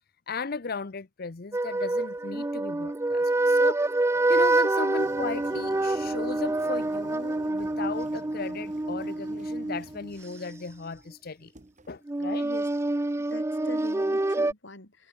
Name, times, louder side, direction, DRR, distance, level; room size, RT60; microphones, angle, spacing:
voice 1, 0.3-3.8 4.3-11.5 11.9-12.5, left 4 dB, 50° left, 0.8 m, -36 dB
sound 1, 1.5-10.6 12.1-14.5, right 2 dB, 15° right, 0.4 m, -26 dB
sound 2, 4.1-12.0, right 1 dB, 40° right, 5.3 m, -63 dB
sound 3, 5.0-10.5, right 2 dB, 70° right, 2.4 m, -50 dB
voice 2, 13.2-15.1, left 2 dB, 70° left, 4.6 m, -43 dB
head